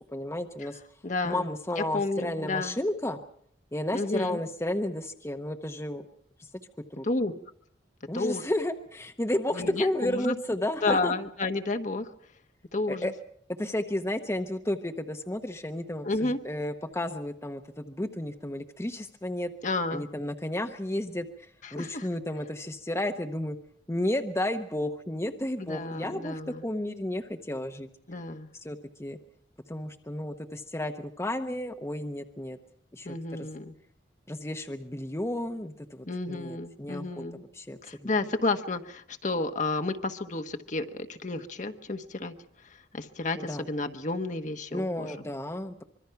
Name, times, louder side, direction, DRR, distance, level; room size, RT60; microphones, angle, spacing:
voice 1, 0.1-0.8 1.2-3.2 3.7-6.0 7.0-7.1 8.1-11.1 12.9-13.1 13.6-19.5 19.9-23.6 23.9-27.9 28.6-29.2 29.7-32.6 32.9-33.5 34.3-37.2 37.5-37.8 43.4-43.6 44.7-45.8, left 1 dB, 15° left, 6 dB, 0.9 m, -32 dB
voice 2, 1.0-1.5 1.8-2.8 3.9-4.4 7.0-7.3 8.1-8.4 9.5-10.3 10.8-12.1 12.7-13.1 16.0-16.4 19.6-20.1 21.6-22.1 25.6-26.6 28.1-28.5 33.0-33.7 36.0-37.4 37.8-42.3 42.6-45.1, left 3 dB, 45° left, 7 dB, 1.2 m, -31 dB
25.0 x 23.0 x 5.8 m, 0.64 s
head